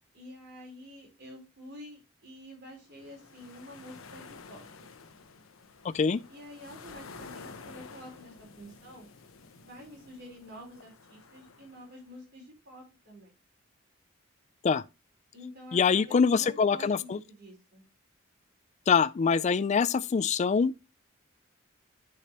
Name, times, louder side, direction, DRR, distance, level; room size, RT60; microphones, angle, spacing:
voice 1, 0.1-4.9 6.3-9.1 9.5-13.3 15.3-17.9, equal, 50° right, 4.0 m, -48 dB
sound 1, 2.8-12.1, left 4 dB, 80° left, 0.8 m, -50 dB
voice 2, 5.8-6.2 14.6-14.8 15.7-17.2 18.9-20.8, left 5 dB, 35° left, 0.3 m, -24 dB
9.9 x 4.8 x 2.9 m
head